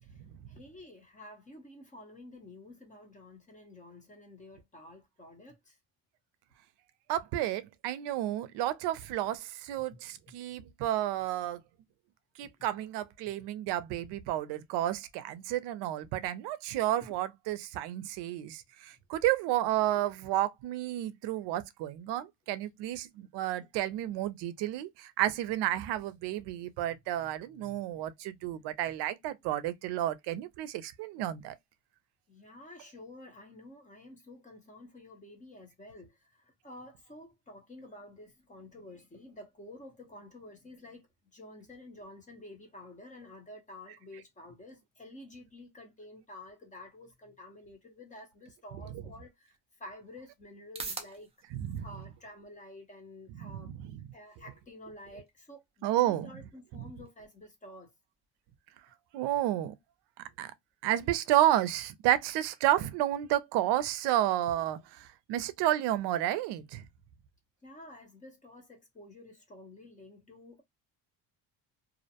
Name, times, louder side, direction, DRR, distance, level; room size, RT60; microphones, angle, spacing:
voice 1, 0.5-5.8 27.6-27.8 32.3-41.1 41.3-49.5 49.8-51.3 51.8-53.7 54.1-57.9 67.6-70.6, left 1 dB, 20° left, 0.7 m, -50 dB
voice 2, 7.1-11.6 12.4-31.5 48.9-49.0 51.5-51.9 53.4-54.0 55.8-56.3 56.7-56.9 59.1-59.7 60.4-60.5 60.8-66.8, right 13 dB, 80° right, 0.5 m, -31 dB
sound 1, 49.3-66.2, right 4 dB, 15° right, 0.4 m, -53 dB
2.5 x 2.1 x 2.7 m
cardioid pair, 145°, 41 cm